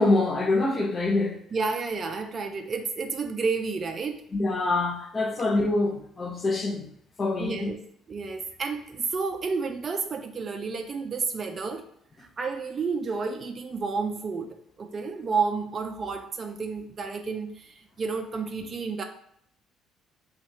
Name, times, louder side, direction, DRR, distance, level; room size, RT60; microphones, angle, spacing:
voice 1, 0.0-1.4 4.3-6.9 7.2-7.8, left 2 dB, 30° left, 0.7 m, -25 dB
voice 2, 1.5-4.2 7.4-7.8 8.1-11.8 12.2-19.0, right 4 dB, 35° right, 0.4 m, -31 dB
2.7 x 2.4 x 4.1 m
figure-of-eight pair, 50°, 0 cm